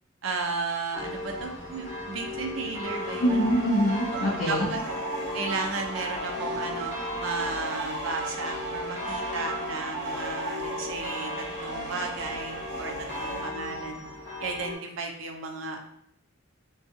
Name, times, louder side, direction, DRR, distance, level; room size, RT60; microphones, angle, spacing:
voice 1, 0.2-3.5 4.1-4.8 5.3-14.0 14.4-15.8, right 4 dB, 70° right, 2 dB, 0.5 m, -34 dB
sound 1, 0.9-14.7, left 2 dB, 15° right, 0.8 m, -37 dB
sound 2, 2.8-13.5, right 2 dB, 50° right, 1.1 m, -36 dB
voice 2, 3.2-4.7, equal, 65° left, -4 dB, 0.5 m, -24 dB
2.6 x 2.3 x 2.6 m, 0.73 s
head